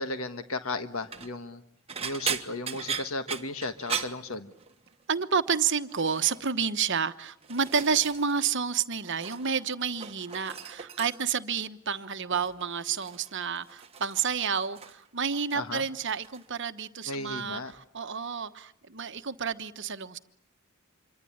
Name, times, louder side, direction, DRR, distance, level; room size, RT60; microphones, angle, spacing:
voice 1, 0.0-1.6 2.0-4.5 15.5-15.8 17.1-17.7, left 2 dB, 70° left, 1.5 m, -35 dB
sound 1, 0.9-1.3 1.9-4.9 5.2-5.6 5.9-6.4 7.1-8.5 8.8-9.6 9.9-11.4 12.3-12.6 13.0-15.1 15.3-15.9 16.2-16.4 17.7-17.8, right 6 dB, 25° right, 1.5 m, -38 dB
voice 2, 5.1-20.2, right 6 dB, 55° right, 1.1 m, -30 dB
26.5 x 23.5 x 8.7 m
head